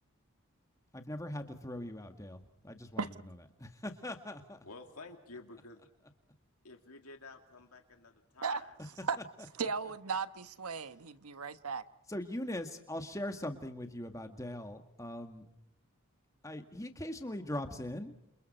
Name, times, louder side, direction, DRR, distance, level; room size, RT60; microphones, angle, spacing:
voice 1, 0.9-3.3 3.6-4.6 9.2-9.3 12.1-15.5 16.4-18.1, left 1 dB, 15° left, 6 dB, 1.9 m, -41 dB
voice 2, 4.6-5.8 6.6-8.8, left 3 dB, 90° left, 4 dB, 2.5 m, -51 dB
voice 3, 9.6-11.8, right 5 dB, 85° right, 12 dB, 1.2 m, -36 dB
29.0 x 28.5 x 4.4 m, 0.79 s
head